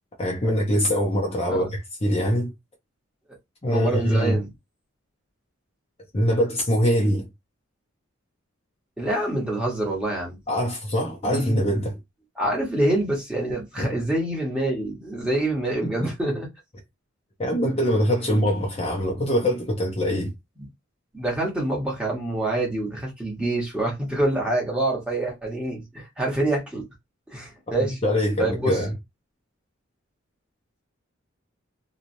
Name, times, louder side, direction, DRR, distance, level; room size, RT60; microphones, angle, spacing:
voice 1, 0.2-2.5 3.6-4.4 6.1-7.3 10.5-12.0 13.8-13.9 16.0-16.1 17.4-20.3 27.8-28.9, equal, 30° left, 0.7 m, -23 dB
voice 2, 3.7-4.5 9.0-10.4 11.2-11.7 12.4-16.5 21.1-26.8 27.3-28.0 28.4-28.8, right 1 dB, 5° right, 1.2 m, -26 dB
3.0 x 2.4 x 2.6 m
head